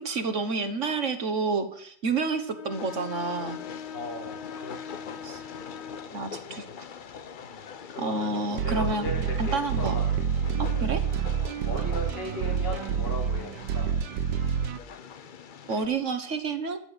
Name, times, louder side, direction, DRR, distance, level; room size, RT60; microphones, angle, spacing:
voice 1, 0.0-3.6 5.2-5.4 6.1-6.6 8.0-9.1 9.4-9.9 10.6-11.0 15.7-16.8, right 3 dB, 50° right, 9 dB, 1.4 m, -29 dB
Bowed string instrument, 2.4-6.2, left 7 dB, 50° left, 0.9 m, -41 dB
Train, 2.7-15.9, left 7 dB, 70° left, 0.4 m, -43 dB
voice 2, 3.9-5.1 6.5-6.7 7.4-10.1 11.6-13.9, left 1 dB, 85° left, 0 dB, 4.1 m, -38 dB
sound 1, 8.5-14.8, right 7 dB, 80° right, 1.4 m, -28 dB
14.0 x 6.9 x 9.6 m, 0.63 s
omnidirectional pair, 1.8 m